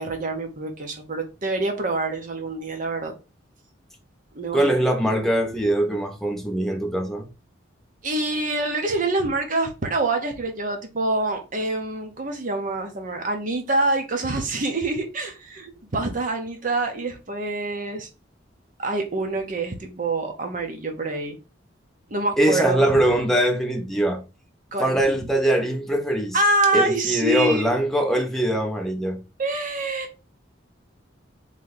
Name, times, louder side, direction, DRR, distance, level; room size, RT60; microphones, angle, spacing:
voice 1, 0.0-3.1 4.3-4.8 8.0-18.1 18.8-21.4 22.1-23.0 24.7-25.0 26.3-27.8 29.4-30.1, right 2 dB, 45° right, 0.7 m, -26 dB
voice 2, 4.5-7.3 22.4-24.2 24.8-26.4 26.7-29.2, right 1 dB, ahead, 0.6 m, -22 dB
3.2 x 2.7 x 3.9 m
head